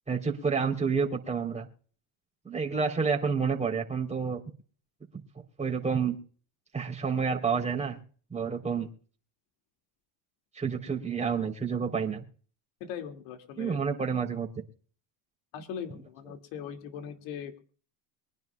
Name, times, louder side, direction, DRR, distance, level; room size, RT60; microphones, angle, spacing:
voice 1, 0.1-1.7 2.4-4.4 5.6-6.2 6.7-8.0 8.3-8.9 10.5-12.2 13.6-14.5, right 5 dB, 15° right, 0 dB, 3.7 m, -29 dB
voice 2, 12.8-13.8 15.5-17.6, left 8 dB, 75° left, 6 dB, 2.6 m, -40 dB
24.5 x 10.5 x 2.4 m, 0.41 s
supercardioid pair, 95°, 45 cm